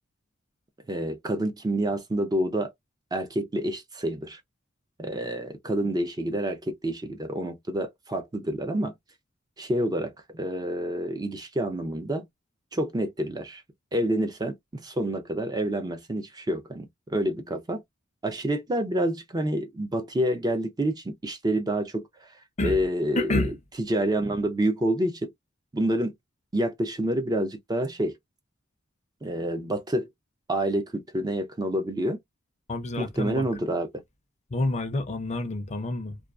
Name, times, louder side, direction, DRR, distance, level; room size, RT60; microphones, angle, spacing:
voice 1, 0.9-2.7 3.1-4.4 5.0-8.9 9.6-12.3 12.7-13.6 13.9-17.8 18.2-22.1 22.6-23.5 23.9-25.3 25.7-26.1 26.5-28.2 29.2-30.1 30.5-32.2 33.0-33.9, right 1 dB, 20° right, 0.4 m, -28 dB
voice 2, 23.2-23.5 32.7-33.5 34.5-36.2, left 2 dB, 35° left, 0.5 m, -28 dB
2.3 x 2.3 x 2.3 m
head